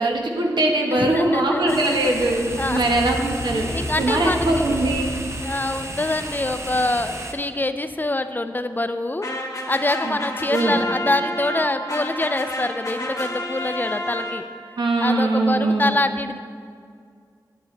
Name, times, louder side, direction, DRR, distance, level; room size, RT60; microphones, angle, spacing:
voice 1, 0.0-3.7 4.0-5.1 10.0-10.2 10.5-10.8 14.8-15.9, right 2 dB, 85° right, 1 dB, 1.1 m, -21 dB
voice 2, 0.9-2.8 3.7-4.5 5.4-9.3 9.7-14.4 15.0-16.4, left 2 dB, 25° left, 10 dB, 0.4 m, -25 dB
sound 1, 1.7-7.3, right 1 dB, 40° right, 0.8 m, -34 dB
sound 2, 2.4-6.1, left 1 dB, 65° left, 0.7 m, -33 dB
sound 3, 9.2-14.7, left 1 dB, 50° left, 1.1 m, -30 dB
9.4 x 8.3 x 3.2 m, 2.2 s
wide cardioid pair, 55°, 7 cm